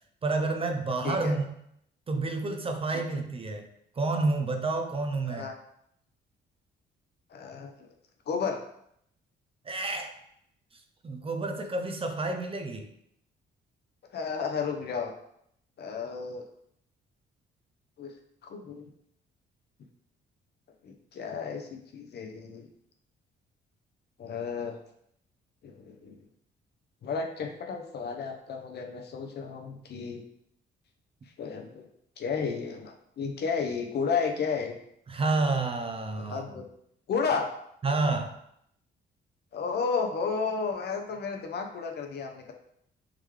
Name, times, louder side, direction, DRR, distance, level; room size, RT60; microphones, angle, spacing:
voice 1, 0.2-1.5 2.1-3.7 4.0-5.5 9.7-10.1 11.0-12.9 35.1-36.6 37.8-38.4, right 3 dB, 30° right, 6 dB, 0.5 m, -29 dB
voice 2, 1.0-1.4 2.9-3.2 5.3-5.5 7.3-7.7 8.3-8.6 14.1-15.1 15.8-16.4 18.0-18.1 18.4-18.9 20.8-22.7 24.2-24.8 25.6-26.2 27.0-30.2 31.4-31.9 32.2-34.8 36.2-36.6 37.1-37.5 39.5-42.5, left 5 dB, 55° left, 4 dB, 0.7 m, -32 dB
3.6 x 3.1 x 3.2 m, 0.72 s
cardioid pair, 90°, 20 cm